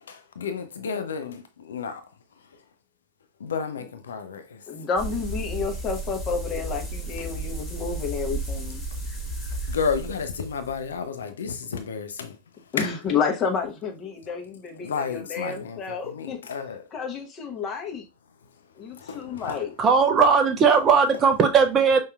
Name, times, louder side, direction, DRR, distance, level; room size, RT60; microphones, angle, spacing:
voice 1, 0.0-2.1 3.4-4.6 9.7-12.4 12.7-13.0 14.8-16.9 19.0-19.6, left 6 dB, 65° left, 0.5 m, -32 dB
voice 2, 4.7-8.8 9.4-9.5 12.7-16.4 16.9-18.1 18.8-19.7, left 6 dB, 30° left, 0.9 m, -30 dB
sound 1, 5.0-11.0, right 2 dB, 10° left, 1.5 m, -33 dB
voice 3, 19.8-22.0, right 5 dB, 25° right, 0.6 m, -18 dB
5.5 x 2.7 x 2.3 m
figure-of-eight pair, 90°, 0 cm